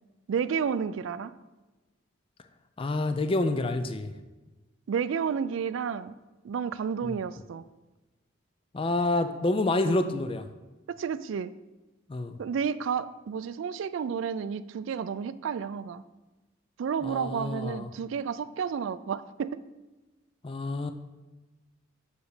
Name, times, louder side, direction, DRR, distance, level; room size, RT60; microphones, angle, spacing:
voice 1, 0.3-1.3 4.9-6.1 6.4-7.6 10.9-11.5 12.4-16.0 16.8-19.6, right 6 dB, 70° right, 15 dB, 0.3 m, -31 dB
voice 2, 2.8-4.1 7.0-7.1 8.7-10.5 12.1-12.4 17.0-17.9 20.4-20.9, left 2 dB, 25° left, 10 dB, 0.4 m, -28 dB
6.5 x 5.0 x 4.9 m, 1.2 s
head